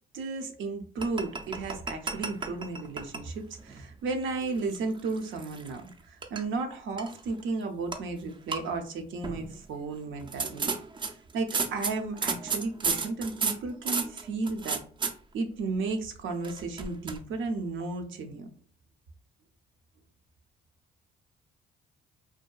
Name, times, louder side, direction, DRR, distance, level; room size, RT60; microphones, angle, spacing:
voice 1, 0.1-10.7 11.3-14.8 15.3-18.5, right 3 dB, 75° right, 5 dB, 0.6 m, -34 dB
sound 1, 1.0-3.3 3.6-3.8 4.4-5.9 6.2-6.4 7.0-7.4 7.9-8.0 8.3-8.6 9.2-9.6 10.2-15.1 16.4-17.2, right 4 dB, 25° right, 0.3 m, -33 dB
2.6 x 2.2 x 2.3 m, 0.44 s
cardioid pair, 90°, 20 cm